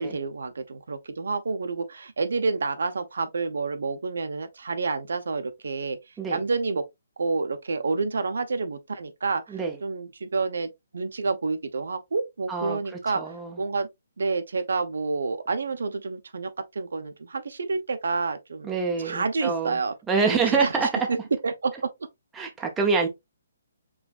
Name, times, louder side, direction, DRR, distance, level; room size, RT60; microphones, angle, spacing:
voice 1, 0.0-6.0 6.3-6.8 7.2-9.4 9.8-13.2 13.6-13.9 14.2-18.7 19.0-19.9 20.3-21.2 21.4-21.7, right 4 dB, 80° right, 0.8 m, -29 dB
voice 2, 12.5-12.8 13.1-13.6 18.6-19.8 20.1-21.1 22.3-23.1, right 4 dB, 5° right, 0.7 m, -26 dB
4.8 x 3.3 x 2.4 m
hypercardioid pair, 170°, 0 cm